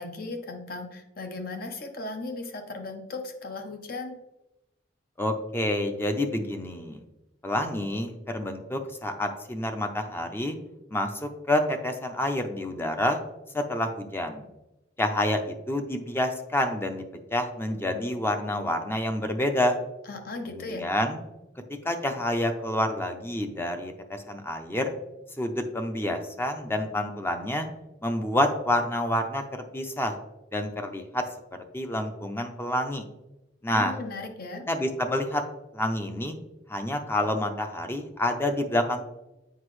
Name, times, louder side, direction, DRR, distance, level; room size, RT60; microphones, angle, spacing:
voice 1, 0.0-4.1 20.1-20.9 33.7-34.6, left 2 dB, 55° left, 5 dB, 1.0 m, -36 dB
voice 2, 5.2-7.0 7.4-10.5 10.9-13.2 13.5-14.4 15.0-17.0 17.3-19.8 20.5-21.2 21.8-24.9 25.4-27.7 28.0-29.4 29.7-30.1 30.5-31.2 31.7-33.0 33.6-33.9 34.7-35.4 35.7-36.3 36.7-39.0, left 1 dB, 15° left, 5 dB, 0.6 m, -28 dB
8.0 x 5.1 x 3.2 m, 0.93 s
head